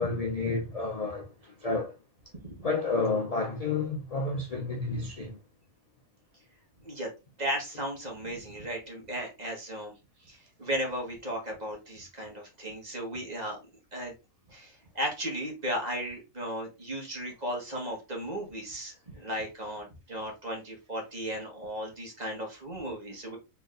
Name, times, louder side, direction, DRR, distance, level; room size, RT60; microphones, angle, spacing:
voice 1, 0.0-1.9 2.6-5.4, left 3 dB, 65° left, 0.3 m, -30 dB
voice 2, 7.4-9.9 10.3-13.6 13.9-14.1 14.5-23.4, equal, 30° right, 1.4 m, -35 dB
4.0 x 3.4 x 2.5 m
omnidirectional pair, 1.5 m